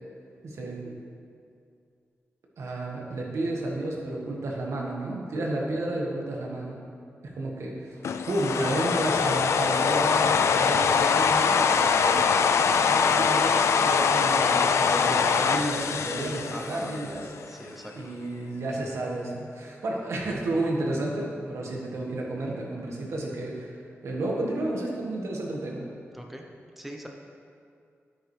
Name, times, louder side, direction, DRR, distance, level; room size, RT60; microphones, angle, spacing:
voice 1, 0.4-0.9 2.6-6.8 7.2-8.0 8.3-12.2 12.6-25.9, right 1 dB, 85° right, -2 dB, 1.6 m, -32 dB
sound 1, 8.0-17.3, left 6 dB, 85° left, 0.3 m, -23 dB
voice 2, 16.5-17.0 17.5-17.9 26.1-26.5 26.8-27.1, right 1 dB, 5° right, 1 dB, 0.7 m, -41 dB
10.5 x 8.9 x 3.3 m, 2.3 s
wide cardioid pair, 120°, 5 cm